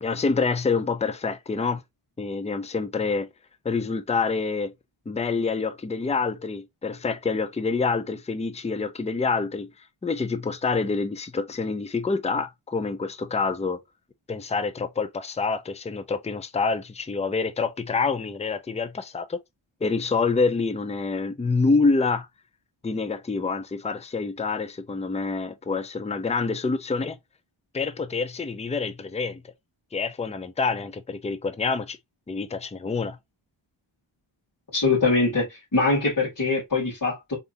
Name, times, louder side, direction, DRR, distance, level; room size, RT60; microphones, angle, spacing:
voice 1, 0.0-1.8 2.2-3.3 3.6-4.7 5.1-9.7 10.0-13.8 14.3-19.4 19.8-22.3 22.8-27.2 27.7-29.4 29.9-32.0 32.3-33.2, left 4 dB, 15° left, 0.5 m, -27 dB
voice 2, 34.7-37.4, left 3 dB, 40° left, 2.5 m, -23 dB
3.7 x 3.5 x 2.6 m
wide cardioid pair, 85°, 50 cm